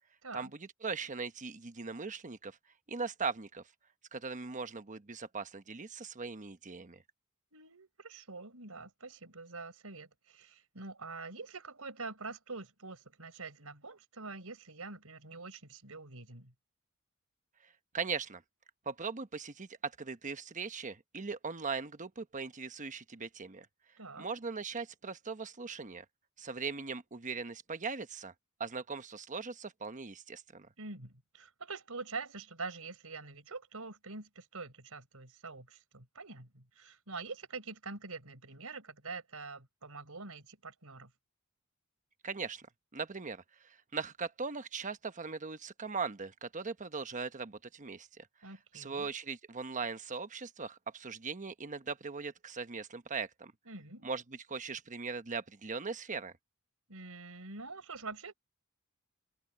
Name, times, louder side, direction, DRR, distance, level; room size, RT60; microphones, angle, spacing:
voice 1, 0.3-2.6 2.9-3.6 4.1-7.0 17.9-18.4 18.9-23.7 24.2-26.0 26.4-28.3 28.6-30.7 42.2-42.7 42.9-48.3 48.7-53.5 54.0-56.3, right 5 dB, 35° right, 1.1 m, -39 dB
voice 2, 7.5-16.5 24.0-24.3 30.8-41.1 48.4-49.1 53.7-54.1 56.9-58.3, right 3 dB, 70° right, 5.9 m, -45 dB
head